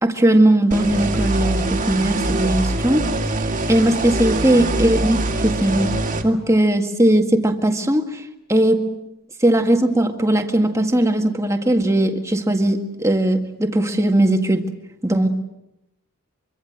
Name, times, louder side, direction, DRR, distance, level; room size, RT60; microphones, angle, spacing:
voice 1, 0.0-3.1 3.7-6.0 6.2-8.2 8.5-8.8 9.4-14.7 15.0-15.3, right 1 dB, 15° right, 5 dB, 1.9 m, -18 dB
sound 1, 0.7-6.2, right 2 dB, 35° right, 2.2 m, -23 dB
25.0 x 24.0 x 8.0 m, 0.86 s
head